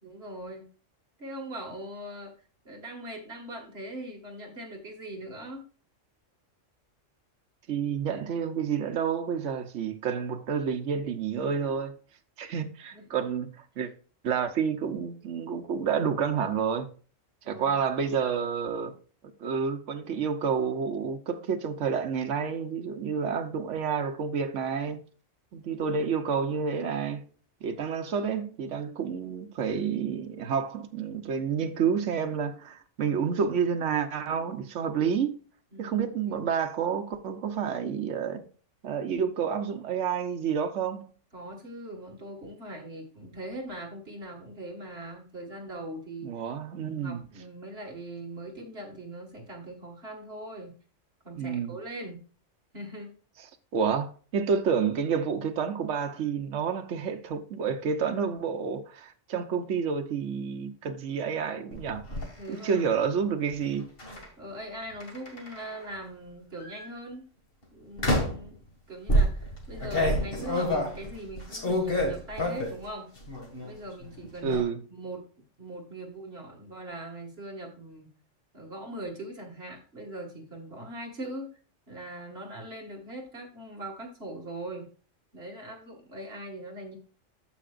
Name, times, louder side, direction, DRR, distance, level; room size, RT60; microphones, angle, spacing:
voice 1, 0.0-0.7 1.2-2.3 2.7-5.6 12.9-13.2 17.4-17.8 35.7-36.4 41.3-46.3 46.8-50.7 51.2-52.2 52.7-53.1 62.4-63.0 64.4-67.2 67.7-68.6 68.9-73.1 73.6-75.2 75.6-78.1 78.5-81.5 81.9-84.9 85.3-87.0, right 1 dB, 50° right, 2.2 m, -41 dB
voice 2, 7.7-11.9 12.4-13.5 13.8-13.9 14.2-16.9 17.5-18.9 19.4-25.0 25.5-27.3 27.6-35.4 35.8-38.4 38.8-41.1 46.2-47.2 51.4-51.8 53.7-62.0 62.5-63.8 74.4-74.8, right 6 dB, 70° right, 1.2 m, -29 dB
sound 1, 61.7-62.3 64.0-64.2 65.0-65.8 66.6-66.9 68.0-68.5 69.1-72.8 73.2-73.8 74.0-74.6, equal, 45° left, 2.2 m, -28 dB
14.5 x 5.0 x 2.5 m
omnidirectional pair, 1.3 m